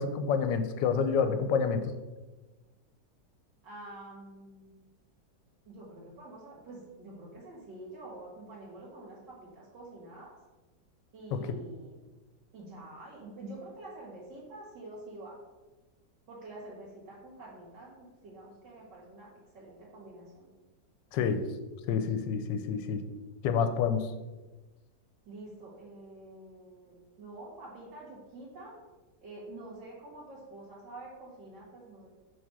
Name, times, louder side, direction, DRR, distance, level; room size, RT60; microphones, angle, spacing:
voice 1, 0.0-1.8 11.3-11.4 21.1-21.4 21.9-23.0 23.4-24.1, left 6 dB, 85° left, 9 dB, 1.3 m, -28 dB
voice 2, 3.6-4.7 5.7-10.3 11.1-12.0 12.5-15.4 16.3-19.3 19.5-20.5 25.3-28.8 29.2-32.1, right 2 dB, 75° right, -7 dB, 2.4 m, -47 dB
6.4 x 3.6 x 6.0 m, 1.2 s
omnidirectional pair, 2.0 m